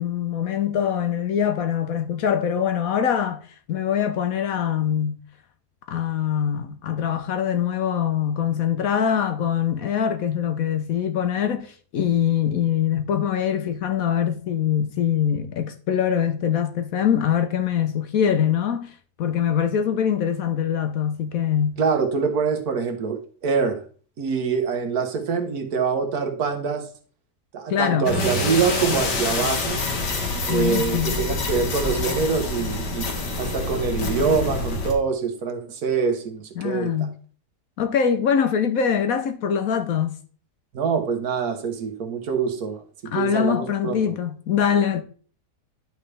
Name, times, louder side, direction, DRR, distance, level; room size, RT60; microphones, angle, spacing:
voice 1, 0.0-3.4 3.7-5.2 5.9-21.8 27.7-28.1 30.5-31.2 36.6-37.1 37.8-40.1 43.1-45.0, left 8 dB, 65° left, 1.0 m, -23 dB
voice 2, 21.8-23.8 24.2-26.9 27.5-29.8 30.5-33.1 33.4-36.9 40.7-44.1, right 5 dB, 65° right, 1.5 m, -25 dB
sound 1, 28.0-34.9, left 3 dB, 85° left, 2.1 m, -26 dB
11.0 x 5.7 x 3.3 m
omnidirectional pair, 1.8 m